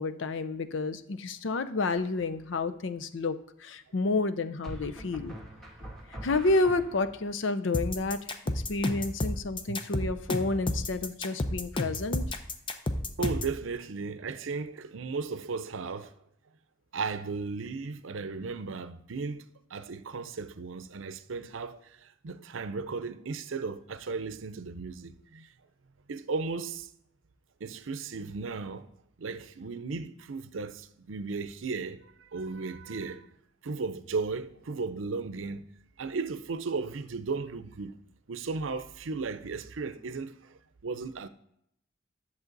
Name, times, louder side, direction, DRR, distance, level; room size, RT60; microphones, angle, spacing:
voice 1, 0.0-5.3 6.2-12.3, left 3 dB, 70° left, 0.6 m, -30 dB
sound 1, 2.0-2.4 4.6-7.3, equal, ahead, 2.0 m, -43 dB
sound 2, 7.7-13.6, left 1 dB, 25° left, 0.6 m, -31 dB
voice 2, 13.2-16.1 16.9-25.5 26.1-26.9 27.6-28.9 29.2-33.3 33.6-35.7 36.0-38.0 38.3-41.3, right 4 dB, 85° right, 0.6 m, -35 dB
10.5 x 7.0 x 4.0 m
head